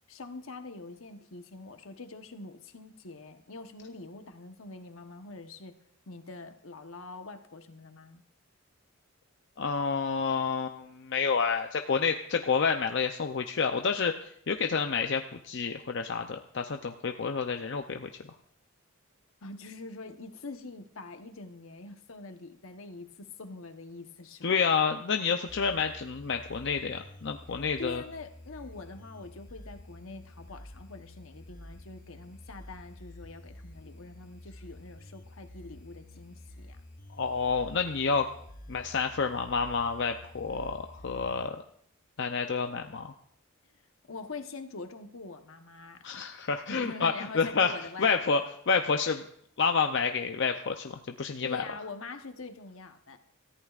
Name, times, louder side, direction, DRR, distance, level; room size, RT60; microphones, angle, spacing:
voice 1, 0.1-5.7 6.1-8.2 19.4-24.6 27.8-36.8 44.1-46.2 46.7-48.4 51.4-53.2, left 3 dB, 75° left, 7 dB, 1.1 m, -44 dB
voice 2, 9.6-18.1 24.4-28.0 37.2-38.3 38.7-41.6 42.2-43.1 46.0-47.7 48.0-48.4 48.7-49.2 49.6-51.6, left 5 dB, 55° left, 5 dB, 0.6 m, -29 dB
sound 1, 25.5-41.5, left 1 dB, 40° left, 1.0 m, -49 dB
25.5 x 14.5 x 2.5 m, 0.67 s
head